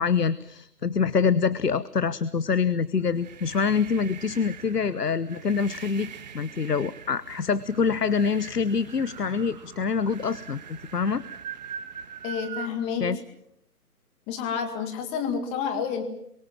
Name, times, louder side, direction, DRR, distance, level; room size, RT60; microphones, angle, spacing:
voice 1, 0.0-11.2 13.0-13.2, left 5 dB, 85° left, 18 dB, 1.1 m, -25 dB
sound 1, 2.9-12.7, right 8 dB, 25° right, 1.7 m, -42 dB
voice 2, 12.2-13.0 14.3-16.0, left 7 dB, 15° left, 8 dB, 2.1 m, -29 dB
27.5 x 24.0 x 7.4 m, 0.74 s
figure-of-eight pair, 155°, 46 cm